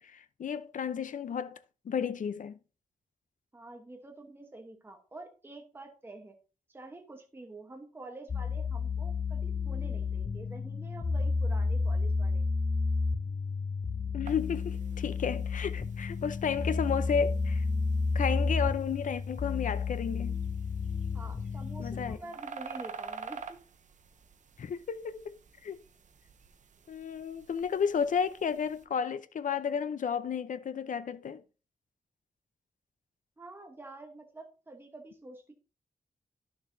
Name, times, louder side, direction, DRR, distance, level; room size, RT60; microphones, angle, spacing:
voice 1, 0.0-1.6 1.9-2.6 14.1-17.6 18.1-20.4 21.8-22.2 24.6-25.8 26.9-31.4, left 7 dB, 65° left, 0.6 m, -32 dB
voice 2, 3.5-6.3 6.7-12.4 21.1-23.6 33.4-35.5, right 2 dB, 15° right, 1.0 m, -48 dB
sound 1, 8.3-22.1, left 4 dB, 25° left, 0.4 m, -31 dB
sound 2, 14.2-28.9, right 5 dB, 60° right, 0.7 m, -50 dB
11.0 x 6.8 x 2.7 m
wide cardioid pair, 165°, 14 cm